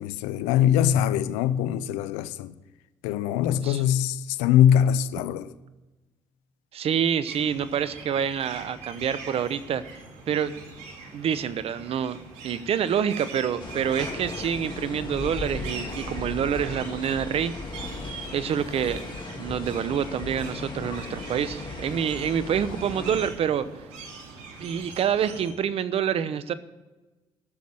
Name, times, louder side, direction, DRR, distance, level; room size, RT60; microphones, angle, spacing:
voice 1, 0.0-2.5 3.0-5.5, left 10 dB, 85° left, 0.6 m, -22 dB
voice 2, 3.5-3.8 6.7-9.8 10.3-10.7 11.1-12.2 12.4-17.9 18.3-23.6 24.6-26.5, right 8 dB, 60° right, 0.9 m, -27 dB
sound 1, 7.3-25.5, right 4 dB, 85° right, 2.2 m, -42 dB
sound 2, 13.6-23.3, left 3 dB, 45° left, 2.2 m, -37 dB
13.0 x 7.4 x 7.9 m
supercardioid pair, 55°, 11 cm